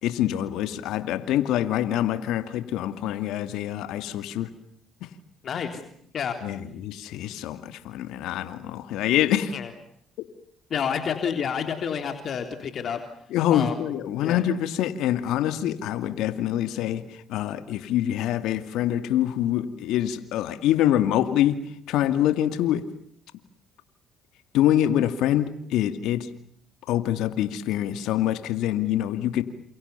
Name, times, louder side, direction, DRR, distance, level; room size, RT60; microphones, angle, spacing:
voice 1, 0.0-4.5 6.4-9.5 13.3-17.0 17.3-21.6 21.9-22.8 24.5-26.3 26.9-29.4, left 12 dB, 75° left, 10 dB, 2.4 m, -25 dB
voice 2, 5.4-5.8 6.1-6.4 9.5-9.7 10.7-13.0 13.5-13.8 14.2-14.4, left 7 dB, 55° left, 7 dB, 3.5 m, -29 dB
30.0 x 28.0 x 7.0 m, 0.65 s
supercardioid pair, 65°, 0 cm